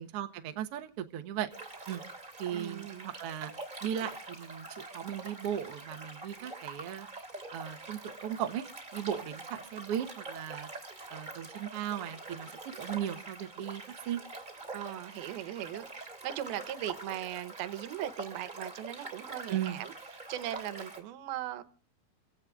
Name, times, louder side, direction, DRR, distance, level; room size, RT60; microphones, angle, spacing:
voice 1, 0.0-1.5 1.9-2.0 2.4-3.5 3.8-7.1 7.5-8.7 8.9-10.7 11.1-14.2 19.5-19.8, right 10 dB, 70° right, 1.4 m, -37 dB
sound 1, 1.5-21.0, right 2 dB, 15° right, 2.3 m, -45 dB
voice 2, 2.5-3.1 14.7-19.9 20.3-21.6, right 12 dB, 85° right, 2.8 m, -39 dB
29.5 x 16.0 x 2.4 m
omnidirectional pair, 4.3 m